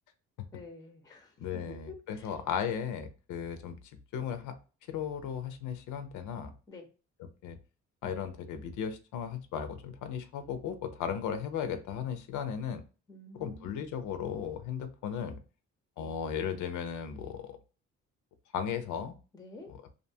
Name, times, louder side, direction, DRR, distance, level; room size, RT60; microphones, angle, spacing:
voice 1, 0.5-1.6 1.9-2.3 6.7-6.9 13.1-13.8 16.0-16.1 19.3-19.7, left 3 dB, 15° left, 4 dB, 0.5 m, -49 dB
voice 2, 1.4-3.8 4.1-4.6 4.9-6.5 7.4-7.6 8.0-12.8 13.3-15.4 16.0-17.6 18.5-19.2 19.7-19.8, left 8 dB, 80° left, 9 dB, 0.5 m, -36 dB
2.6 x 2.2 x 2.6 m, 0.34 s
cardioid pair, 90°, 30 cm